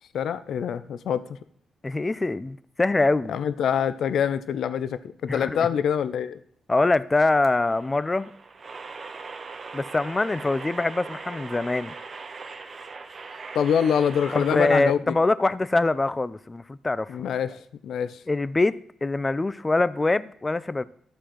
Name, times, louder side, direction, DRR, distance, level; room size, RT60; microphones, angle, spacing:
voice 1, 0.1-1.2 3.3-6.4 13.5-15.0 17.1-18.2, left 8 dB, 75° left, 0.6 m, -25 dB
voice 2, 1.8-3.3 5.3-5.7 6.7-8.3 9.7-11.9 14.3-17.2 18.3-18.8 19.0-20.8, left 2 dB, 25° left, 0.5 m, -24 dB
sound 1, 7.4-14.9, right 4 dB, 45° right, 1.2 m, -40 dB
13.0 x 4.4 x 7.5 m
cardioid pair, 75°, 0 cm